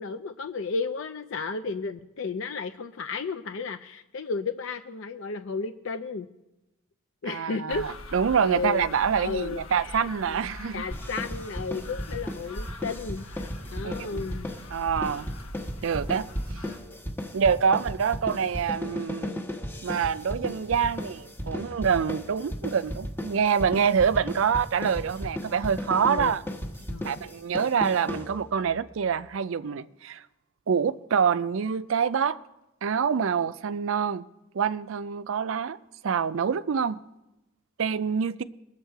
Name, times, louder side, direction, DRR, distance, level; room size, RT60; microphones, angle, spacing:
voice 1, 0.0-6.3 7.2-7.9 8.4-8.9 9.2-10.4 10.7-13.3 13.7-14.5 26.1-26.3 26.9-27.2, left 4 dB, 60° left, 0.4 m, -33 dB
voice 2, 7.3-10.8 13.8-14.2 14.7-15.3 15.8-16.3 17.3-19.4 19.8-26.4 27.0-30.2 30.7-32.4 32.8-34.3 34.5-35.8 36.0-37.0 37.8-38.4, right 6 dB, 65° right, 0.4 m, -26 dB
sound 1, 7.7-16.8, left 1 dB, 80° left, 1.1 m, -42 dB
sound 2, 10.9-28.7, left 1 dB, 10° left, 1.1 m, -36 dB
21.0 x 7.3 x 4.6 m
head